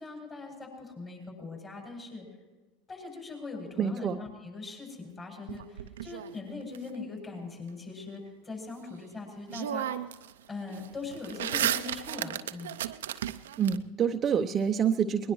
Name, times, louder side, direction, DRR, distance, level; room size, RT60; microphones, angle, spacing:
voice 1, 0.0-2.3 2.9-10.1 10.5-12.8, left 3 dB, 25° left, 0 dB, 7.4 m, -41 dB
voice 2, 3.8-4.2 13.6-15.3, right 7 dB, 30° right, 7 dB, 0.7 m, -27 dB
sound 1, 5.5-6.8 9.0-9.1 9.5-10.3 10.6-13.8, right 11 dB, 75° right, 0.5 m, -34 dB
21.0 x 20.5 x 3.1 m, 1.2 s
hypercardioid pair, 90°, 0 cm